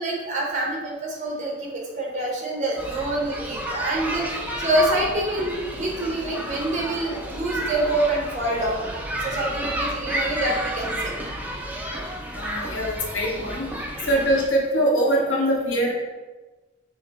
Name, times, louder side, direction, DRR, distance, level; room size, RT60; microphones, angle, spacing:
voice 1, 0.0-11.1, right 1 dB, 40° right, -2 dB, 0.9 m, -26 dB
sound 1, 2.8-14.5, right 1 dB, 10° right, 0.3 m, -31 dB
voice 2, 12.3-13.7 14.0-15.9, right 1 dB, 75° left, -1 dB, 0.7 m, -23 dB
4.9 x 2.1 x 3.0 m, 1.2 s
head